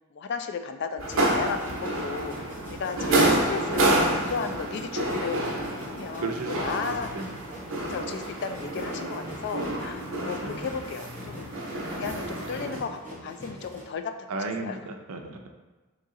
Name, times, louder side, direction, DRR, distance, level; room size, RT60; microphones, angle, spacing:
voice 1, 0.1-5.4 5.9-7.1 7.9-11.5 11.9-14.1 14.6-14.8, left 5 dB, 50° left, 8 dB, 0.3 m, -34 dB
sound 1, 1.0-13.8, equal, 10° left, 0.9 m, -43 dB
sound 2, 1.0-12.8, right 1 dB, 65° right, 0.9 m, -29 dB
voice 2, 6.2-6.6 7.1-7.4 10.2-10.6 14.3-15.5, right 3 dB, 85° right, 4 dB, 0.5 m, -34 dB
4.1 x 2.8 x 3.7 m, 1.2 s
head